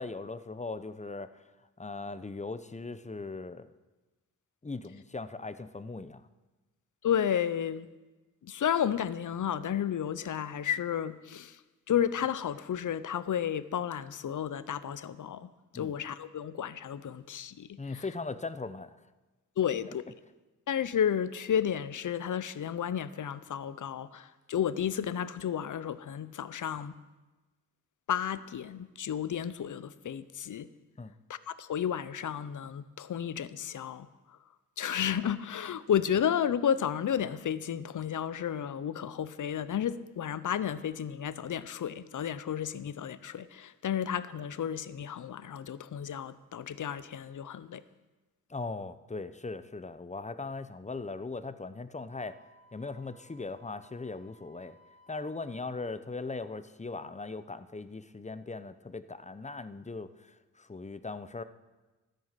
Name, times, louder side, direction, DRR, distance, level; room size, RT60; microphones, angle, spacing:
voice 1, 0.0-1.4 1.8-3.7 4.6-6.3 15.7-15.9 17.8-19.0 19.9-20.0 31.0-31.1 48.5-52.4 52.7-54.8 55.1-61.4, left 3 dB, 20° left, 0.8 m, -39 dB
voice 2, 7.0-7.9 8.4-11.6 11.9-17.8 19.6-20.0 20.7-27.0 28.1-30.7 31.3-34.1 34.8-47.8, left 9 dB, 55° left, 0.8 m, -32 dB
Wind instrument woodwind instrument, 52.1-55.9, right 1 dB, 75° left, 2.0 m, -61 dB
13.5 x 9.3 x 5.8 m
supercardioid pair, 45°, 37 cm